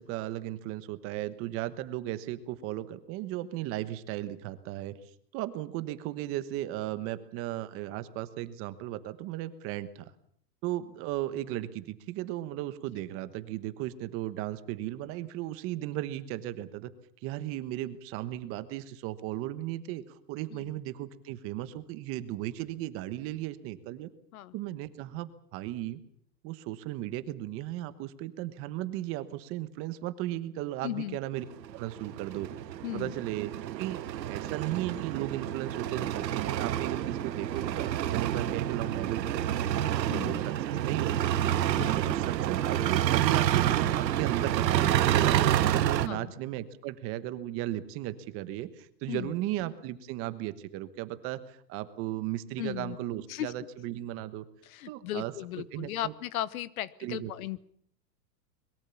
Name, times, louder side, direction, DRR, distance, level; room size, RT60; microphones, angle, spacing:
voice 1, 0.0-5.0 5.3-10.1 10.6-16.9 17.2-24.1 24.5-26.0 26.4-31.4 31.7-32.5 32.9-34.0 34.3-41.3 41.7-54.4 54.9-56.1 57.0-57.3, right 14 dB, 25° right, 13 dB, 1.2 m, -36 dB
voice 2, 30.8-31.2 32.8-33.1 40.1-40.4 41.7-42.2 46.1-46.2 49.1-49.3 52.6-53.0 53.3-53.5 54.7-57.6, left 13 dB, 60° left, 19 dB, 1.1 m, -36 dB
sound 1, 31.5-46.1, right 11 dB, 85° right, 1.6 m, -28 dB
22.5 x 22.0 x 7.1 m, 0.64 s
supercardioid pair, 160°, 49 cm